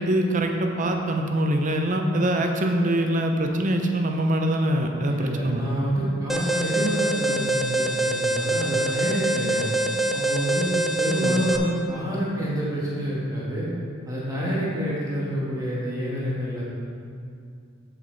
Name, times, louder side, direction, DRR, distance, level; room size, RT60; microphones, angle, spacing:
voice 1, 0.0-5.8 11.2-11.4, right 1 dB, 40° right, 3 dB, 0.7 m, -24 dB
voice 2, 5.1-9.6 10.1-13.7 14.1-16.6, equal, 20° right, -7 dB, 1.5 m, -28 dB
Alarm, 6.3-11.6, right 2 dB, ahead, 0.5 m, -25 dB
8.1 x 7.5 x 4.0 m, 2.3 s
head